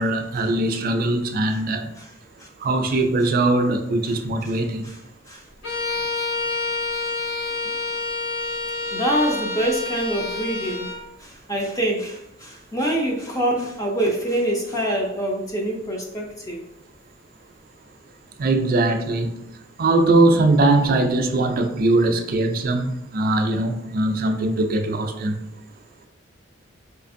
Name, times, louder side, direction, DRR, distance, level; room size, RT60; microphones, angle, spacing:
voice 1, 0.0-1.9 2.6-4.9 18.4-19.4 19.8-25.4, right 2 dB, 50° right, 6 dB, 0.4 m, -21 dB
Bowed string instrument, 5.6-11.0, left 3 dB, 60° left, 1.1 m, -28 dB
voice 2, 8.9-10.9 11.2-16.6, right 1 dB, 15° left, 0 dB, 0.4 m, -25 dB
4.7 x 2.5 x 2.6 m, 0.81 s
head